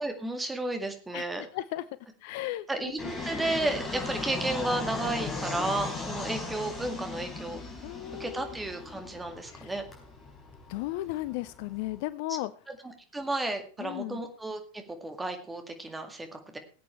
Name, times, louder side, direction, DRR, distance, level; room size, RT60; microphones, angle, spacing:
voice 1, 0.0-1.5 2.7-7.6 8.2-9.8 12.3-12.4 12.8-16.6, right 2 dB, 10° right, 5 dB, 2.0 m, -33 dB
voice 2, 1.1-1.8 2.2-2.7 3.0-3.1 7.8-8.5 9.5-9.7 10.7-12.5 13.8-14.2, left 16 dB, 50° left, 16 dB, 0.5 m, -35 dB
Fixed-wing aircraft airplane, 3.0-12.0, left 3 dB, 20° left, 4.4 m, -38 dB
19.0 x 8.4 x 3.2 m, 0.39 s
figure-of-eight pair, 90°, 0 cm